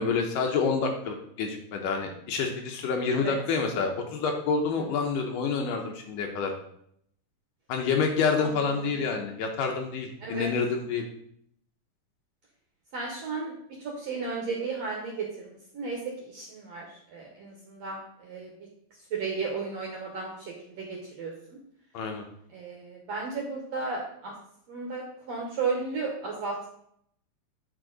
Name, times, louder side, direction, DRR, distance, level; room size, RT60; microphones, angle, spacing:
voice 1, 0.0-6.5 7.7-11.1 21.9-22.3, left 5 dB, 75° left, 3 dB, 2.2 m, -28 dB
voice 2, 8.4-9.0 10.2-10.5 12.9-18.5 19.1-21.6 22.5-24.3 24.7-26.7, right 4 dB, 70° right, -1 dB, 1.6 m, -34 dB
9.6 x 4.3 x 3.9 m, 0.70 s
omnidirectional pair, 4.3 m